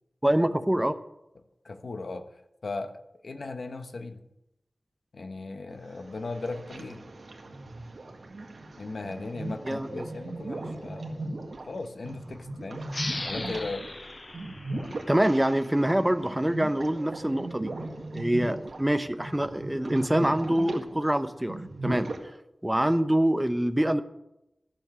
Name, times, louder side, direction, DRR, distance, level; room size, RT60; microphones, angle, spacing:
voice 1, 0.2-0.9 9.6-10.1 15.1-17.7 18.1-22.1 22.6-24.0, right 1 dB, 10° right, 10 dB, 0.8 m, -25 dB
voice 2, 1.6-2.2 2.6-4.2 5.1-7.0 8.8-11.3 11.7-12.9 13.2-13.9, left 3 dB, 75° left, 8 dB, 1.2 m, -37 dB
sound 1, 5.7-22.2, right 2 dB, 75° right, 1.8 m, -38 dB
sound 2, 12.9-16.1, left 2 dB, 35° left, 0.6 m, -39 dB
13.0 x 7.2 x 8.0 m, 0.88 s
wide cardioid pair, 85°, 0 cm